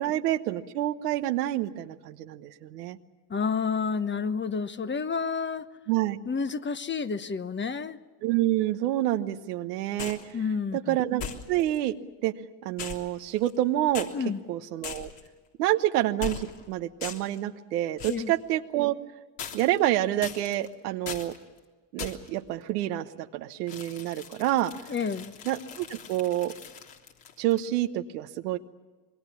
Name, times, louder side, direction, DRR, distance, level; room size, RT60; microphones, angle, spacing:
voice 1, 0.0-3.0 5.9-6.2 8.2-10.2 10.7-11.2 11.5-12.0 12.2-12.3 12.6-14.1 14.5-15.1 15.6-18.9 19.5-21.3 21.9-24.7 25.4-26.5 27.4-28.6, right 14 dB, 90° right, 9 dB, 1.2 m, -28 dB
voice 2, 3.3-5.7 6.3-8.0 10.3-11.0 14.1-14.5 18.1-18.3 24.9-25.3, left 5 dB, 25° left, 11 dB, 1.1 m, -30 dB
sound 1, 10.0-10.3 11.2-11.8 12.8-13.6 13.9-14.1 14.8-15.3 16.2-16.6 17.0-17.4 18.0-18.3 19.4-19.9 20.2-20.7 21.1-21.4 22.0-22.4 23.7-27.7, left 7 dB, 65° left, 3.4 m, -40 dB
26.5 x 22.0 x 7.2 m, 1.3 s
supercardioid pair, 75°, 46 cm